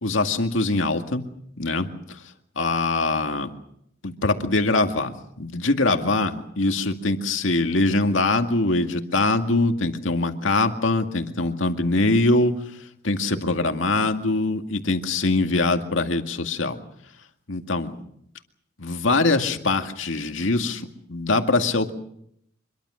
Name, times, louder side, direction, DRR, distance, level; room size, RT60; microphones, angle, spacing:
voice 1, 0.0-1.2 1.6-1.9 2.6-3.5 4.0-12.5 13.0-16.8 17.5-17.9 18.8-21.9, left 2 dB, 80° left, 5 dB, 2.1 m, -23 dB
25.5 x 23.0 x 6.4 m, 0.72 s
head